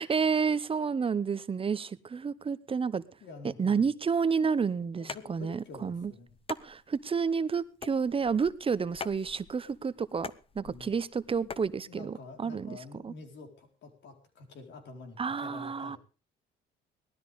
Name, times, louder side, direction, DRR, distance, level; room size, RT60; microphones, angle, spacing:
voice 1, 0.0-3.0 3.6-6.1 6.6-13.1 15.2-16.0, right 5 dB, 25° right, 0.7 m, -30 dB
voice 2, 3.2-3.9 5.0-6.4 10.6-10.9 11.4-11.6 11.9-16.0, left 3 dB, 60° left, 4.4 m, -48 dB
sound 1, 5.0-11.7, left 5 dB, 25° left, 0.8 m, -45 dB
18.5 x 13.0 x 3.6 m
cardioid pair, 100°, 21 cm